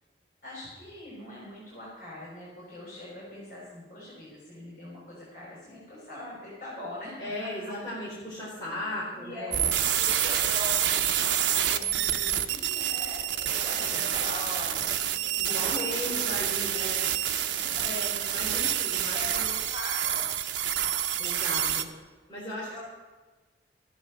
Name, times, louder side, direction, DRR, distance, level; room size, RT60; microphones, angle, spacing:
voice 1, 0.4-7.7 8.6-16.1 17.2-17.8 19.1-20.2 22.4-22.9, left 1 dB, 45° left, -7 dB, 6.3 m, -42 dB
voice 2, 7.2-9.6 13.7-14.0 15.1-17.1 17.8-19.5 21.2-21.9 22.3-22.9, left 1 dB, 20° left, -9 dB, 4.5 m, -37 dB
sound 1, 9.5-21.8, right 10 dB, 80° right, 1.0 m, -28 dB
13.5 x 10.5 x 7.4 m, 1.3 s
head